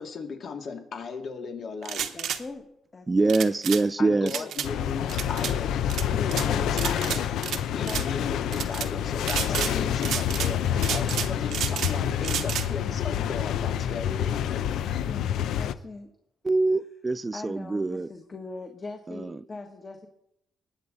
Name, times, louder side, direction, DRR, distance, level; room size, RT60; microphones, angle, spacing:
voice 1, 0.0-2.2 4.0-5.7 6.1-7.2 7.7-14.7, left 5 dB, 60° left, 2.4 m, -36 dB
sound 1, 1.8-2.4 3.3-3.8 4.3-4.7 5.1-5.5 5.9-6.5 6.8-7.6 7.8-8.1 8.5-8.9 9.2-9.7 10.0-10.5 10.8-11.9 12.2-12.7, right 9 dB, 75° right, 0.9 m, -31 dB
voice 2, 2.1-2.6 2.9-3.4 4.1-4.5 6.3-6.7 7.7-8.0 9.4-9.9 15.0-16.1 17.3-20.1, left 3 dB, 30° left, 1.6 m, -41 dB
voice 3, 3.1-4.3 16.4-18.1 19.1-19.4, right 3 dB, 25° right, 0.3 m, -24 dB
sound 2, 4.6-15.7, left 9 dB, 80° left, 0.6 m, -28 dB
20.0 x 8.0 x 4.0 m
cardioid pair, 90°, 0 cm